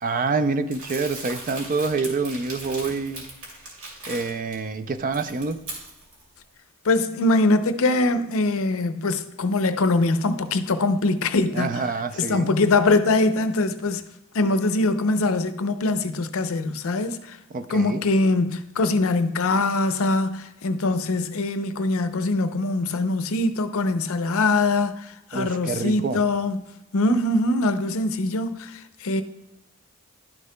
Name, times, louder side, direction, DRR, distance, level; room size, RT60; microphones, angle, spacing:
voice 1, 0.0-3.2 4.1-5.6 11.5-12.5 17.5-18.0 25.3-26.2, right 4 dB, 40° right, 0.4 m, -27 dB
Crumpling crinkling, 0.7-4.5 4.9-6.2, right 2 dB, 60° right, 2.4 m, -38 dB
voice 2, 6.8-11.8 12.2-14.0 14.3-17.4 17.7-26.6 26.9-29.2, left 2 dB, 65° left, 0.6 m, -23 dB
11.5 x 6.5 x 2.2 m
head